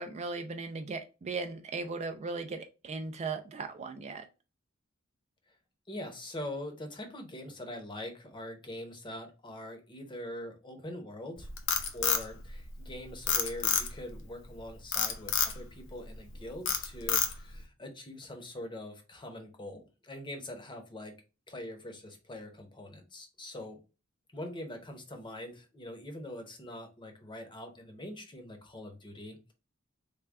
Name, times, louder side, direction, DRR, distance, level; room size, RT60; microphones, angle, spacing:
voice 1, 0.0-2.6 2.8-4.3, right 4 dB, 30° right, 0.3 m, -37 dB
voice 2, 5.9-11.5 11.9-21.1 21.5-23.8 24.3-29.5, left 1 dB, 25° left, 0.7 m, -43 dB
Frog, 11.4-12.9 13.3-14.1 14.9-15.6 16.1-16.3 16.7-17.6, left 7 dB, 65° left, 0.6 m, -28 dB
3.4 x 2.2 x 3.4 m
head